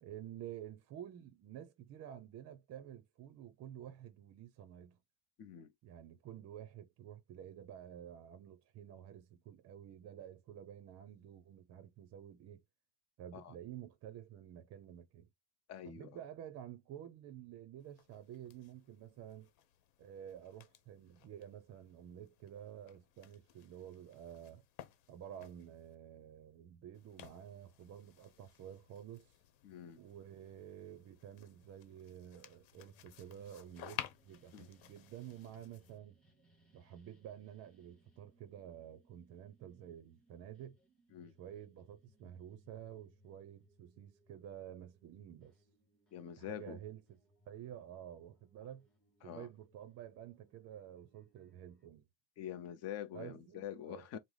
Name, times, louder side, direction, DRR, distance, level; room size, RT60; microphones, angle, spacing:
voice 1, 0.0-5.0 5.8-12.6 13.2-15.3 15.8-19.5 20.0-24.6 25.1-29.4 30.0-36.2 36.7-40.8 41.4-45.6 46.4-47.0 47.5-48.9 49.2-52.1 53.1-54.2, right 10 dB, 35° right, 0.5 m, -51 dB
voice 2, 5.4-5.7 13.3-13.5 15.7-16.1 29.6-30.0 34.5-34.7 41.1-41.3 46.1-46.8 49.2-49.5 52.4-54.2, left 10 dB, 35° left, 0.6 m, -45 dB
sound 1, 17.8-26.0 26.9-36.0, left 11 dB, 65° left, 1.1 m, -55 dB
sound 2, 32.7-51.9, equal, ahead, 2.4 m, -71 dB
4.7 x 2.0 x 3.8 m
cardioid pair, 165°, 45 cm